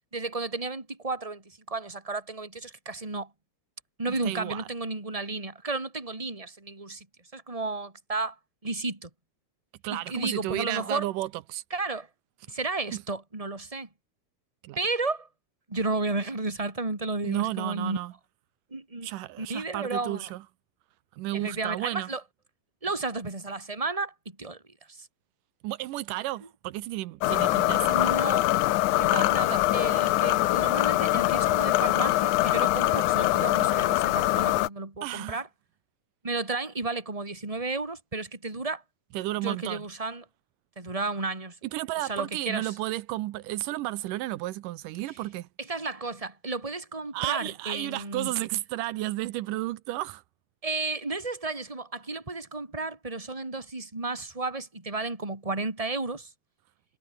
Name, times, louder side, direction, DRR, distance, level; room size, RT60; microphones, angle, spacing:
voice 1, 0.1-3.3 4.0-7.1 7.3-8.4 8.6-9.1 9.9-11.1 11.7-12.1 12.5-13.9 14.8-15.3 15.7-18.0 18.7-19.1 19.4-20.3 21.3-22.2 22.8-24.6 24.9-25.1 27.9-28.5 29.0-35.5 36.2-38.8 39.4-40.2 40.8-41.6 42.0-42.7 45.6-48.3 50.6-56.3, right 3 dB, 10° right, 3.1 m, -33 dB
voice 2, 4.1-4.7 9.8-11.6 12.9-13.0 14.6-14.8 17.2-18.1 19.0-20.4 21.2-22.1 25.6-28.2 35.0-35.4 39.1-39.9 41.7-45.5 47.1-50.2, right 16 dB, 85° right, 2.4 m, -33 dB
sound 1, 27.2-34.7, left 17 dB, 75° left, 2.1 m, -23 dB
omnidirectional pair, 3.7 m